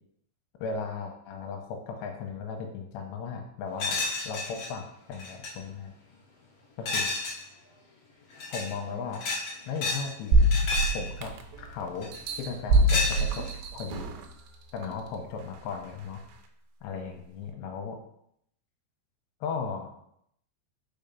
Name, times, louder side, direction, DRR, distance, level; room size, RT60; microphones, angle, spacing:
voice 1, 0.6-5.9 6.8-7.1 8.5-9.2 9.7-10.5 10.9-11.3 11.6-12.1 12.4-13.5 13.7-14.1 14.7-16.2 16.8-18.0 19.4-20.0, left 5 dB, 85° left, 2 dB, 3.0 m, -36 dB
sound 1, 3.8-4.7 5.1-5.5 6.8-7.4 8.3-8.7 9.1-10.1 10.4-11.0 12.0-12.3 12.9-13.5, left 3 dB, 50° left, 1.9 m, -31 dB
sound 2, 10.3-11.6 12.1-14.3 14.8-14.9, right 1 dB, 85° right, 3.0 m, -24 dB
5.7 x 5.2 x 5.4 m, 0.72 s
omnidirectional pair, 5.0 m